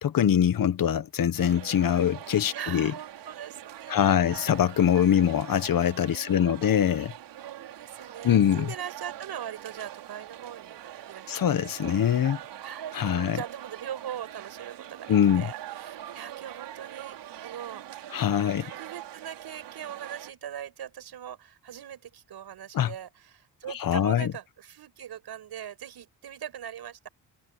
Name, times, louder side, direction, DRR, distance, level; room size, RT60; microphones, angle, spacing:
voice 1, 0.0-2.9 3.9-7.1 8.2-8.7 11.3-12.4 12.9-13.4 15.1-15.5 18.1-18.7 22.7-22.9 23.8-24.3, left 9 dB, 55° left, 1.2 m, -23 dB
sound 1, 1.4-20.3, right 12 dB, 85° right, 4.8 m, -43 dB
voice 2, 2.2-4.8 6.1-6.9 7.4-11.3 11.8-12.0 12.6-18.0 18.4-27.1, right 9 dB, 65° right, 5.7 m, -41 dB
cardioid pair, 110°, 41 cm